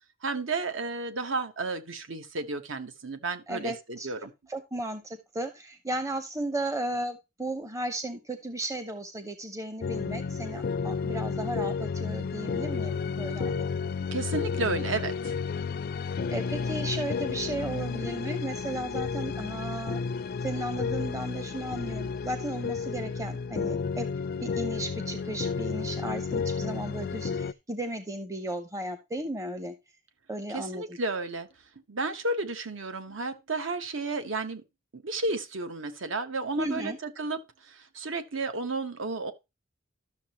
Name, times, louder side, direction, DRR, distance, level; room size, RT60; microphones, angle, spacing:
voice 1, 0.2-4.3 14.1-15.4 30.5-31.5 31.9-34.6 34.9-39.3, right 3 dB, 75° right, 1.1 m, -32 dB
voice 2, 3.5-4.1 4.5-13.7 16.1-20.0 20.4-24.1 24.4-29.8 30.3-31.0 36.6-37.0, right 1 dB, 15° right, 0.7 m, -35 dB
sound 1, 9.8-27.5, left 5 dB, 50° left, 0.4 m, -32 dB
12.0 x 6.6 x 2.9 m
head